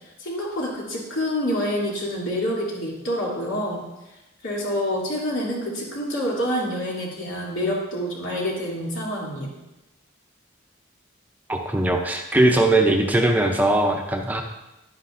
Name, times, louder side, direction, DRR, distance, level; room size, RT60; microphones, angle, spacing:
voice 1, 0.2-3.8 4.4-9.5, equal, 85° left, -4 dB, 2.8 m, -27 dB
voice 2, 11.5-14.4, right 1 dB, 10° right, 3 dB, 0.6 m, -20 dB
10.5 x 9.7 x 2.6 m, 1.0 s
head